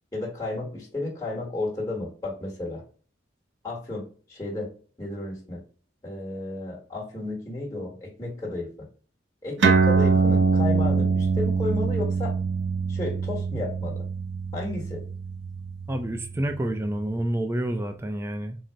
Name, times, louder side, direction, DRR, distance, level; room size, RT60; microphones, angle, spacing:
voice 1, 0.1-2.8 3.6-4.7 5.0-5.6 6.0-8.9 9.4-12.3 12.9-14.1 14.5-15.0, left 2 dB, 15° left, -4 dB, 1.1 m, -33 dB
sound 1, 9.6-16.5, right 4 dB, 75° right, 0.5 m, -24 dB
voice 2, 15.9-18.6, right 1 dB, 15° right, 6 dB, 0.3 m, -28 dB
3.8 x 2.0 x 4.4 m, 0.41 s
head